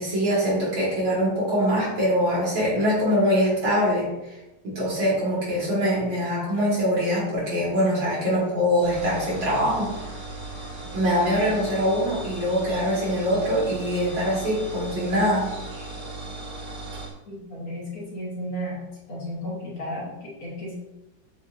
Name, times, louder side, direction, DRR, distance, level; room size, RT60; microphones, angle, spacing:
voice 1, 0.0-4.1 4.6-9.9 10.9-15.5, equal, 80° right, -6 dB, 2.5 m, -23 dB
sound 1, 8.8-17.1, right 2 dB, 50° right, 1.1 m, -37 dB
voice 2, 17.3-18.8 19.1-20.7, equal, 55° left, -5 dB, 1.6 m, -34 dB
7.6 x 2.6 x 2.5 m, 0.97 s
omnidirectional pair, 2.1 m